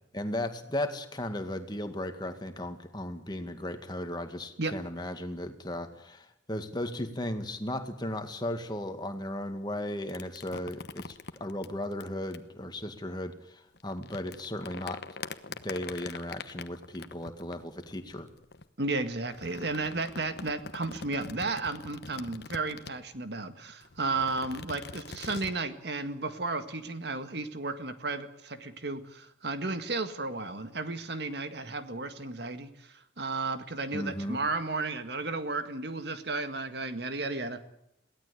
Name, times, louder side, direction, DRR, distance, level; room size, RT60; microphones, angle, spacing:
voice 1, 0.1-15.0 15.6-18.3 33.9-34.4, left 1 dB, 25° left, 7 dB, 2.0 m, -36 dB
sound 1, 10.1-12.4 13.7-18.6 19.3-23.2 23.8-25.6, left 4 dB, 60° left, 1.1 m, -43 dB
voice 2, 18.8-37.6, right 3 dB, 60° right, 9 dB, 1.9 m, -33 dB
22.5 x 17.0 x 8.4 m, 0.79 s
head